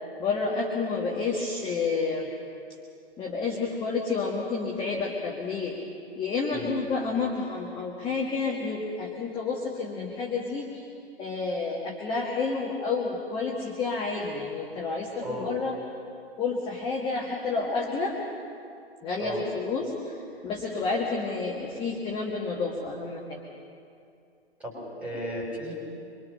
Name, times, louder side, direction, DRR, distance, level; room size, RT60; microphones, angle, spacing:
voice 1, 0.0-2.3 3.2-5.8 6.2-10.9 11.2-15.8 16.4-18.2 19.0-20.2 20.4-23.4, left 4 dB, 15° left, -1 dB, 1.8 m, -30 dB
voice 2, 24.6-25.7, equal, 5° right, -3 dB, 6.5 m, -35 dB
27.0 x 23.5 x 5.5 m, 2.5 s
figure-of-eight pair, 120°, 32 cm